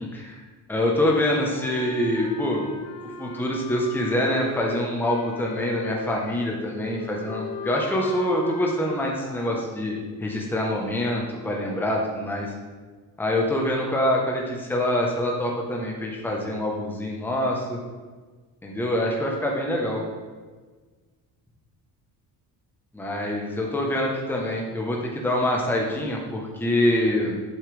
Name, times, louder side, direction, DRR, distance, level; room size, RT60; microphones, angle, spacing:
voice 1, 0.7-2.6 3.2-12.5 13.2-17.8 18.6-20.0 22.9-27.4, left 1 dB, 5° left, -1 dB, 1.2 m, -25 dB
sound 1, 1.0-9.7, left 5 dB, 55° left, 0.9 m, -37 dB
8.3 x 7.4 x 3.5 m, 1.4 s
cardioid pair, 125°, 38 cm